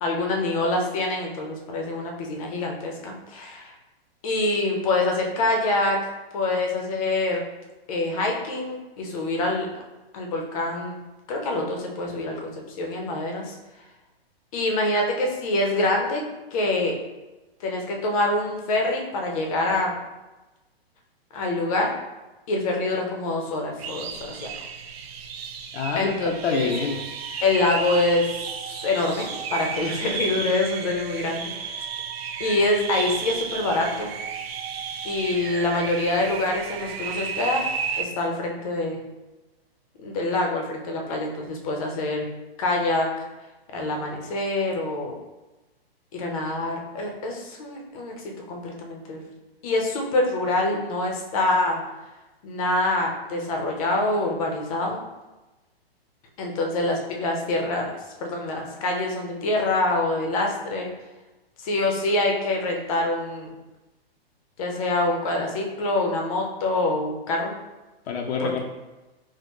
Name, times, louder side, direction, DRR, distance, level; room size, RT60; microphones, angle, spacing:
voice 1, 0.0-3.7 4.2-6.0 6.3-7.4 7.9-9.7 10.1-11.0 11.3-13.6 14.5-16.2 16.5-16.9 17.6-19.9 21.3-21.9 22.5-24.4 26.0-26.6 27.4-28.3 28.7-31.7 32.4-34.1 35.0-37.6 38.0-39.0 40.0-42.2 42.6-43.1 43.7-45.1 46.1-48.1 48.5-49.2 49.6-51.8 52.4-55.0 56.4-57.9 58.2-60.9 61.6-63.5 64.6-67.5 68.4-68.6, left 2 dB, 35° left, 1 dB, 0.6 m, -25 dB
sound 1, 23.8-38.0, right 6 dB, 75° right, 0.5 m, -33 dB
voice 2, 25.7-27.0 68.1-68.6, left 5 dB, 90° left, 1 dB, 0.6 m, -27 dB
4.3 x 2.1 x 3.0 m, 1.1 s
hypercardioid pair, 155°, 31 cm